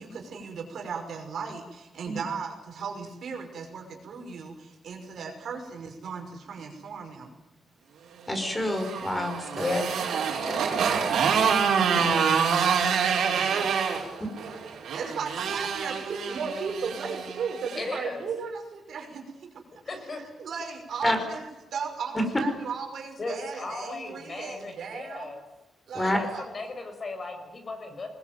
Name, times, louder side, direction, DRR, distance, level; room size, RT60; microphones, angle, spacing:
voice 1, 0.0-7.3 10.6-11.1 13.3-13.8 14.9-19.5 20.1-25.3 25.9-26.4, right 5 dB, 70° right, 3 dB, 5.8 m, -36 dB
voice 2, 8.3-9.8 11.8-12.2 21.0-21.2 22.1-22.2 25.9-26.2, left 1 dB, 15° left, 6 dB, 5.3 m, -28 dB
Motorcycle, 8.5-17.9, right 6 dB, 90° right, 5.2 m, -26 dB
voice 3, 17.8-18.3 19.9-20.2 23.2-25.4 26.0-28.1, left 3 dB, 35° left, 5 dB, 6.1 m, -36 dB
24.5 x 21.0 x 9.3 m, 1.0 s
wide cardioid pair, 130°, 0 cm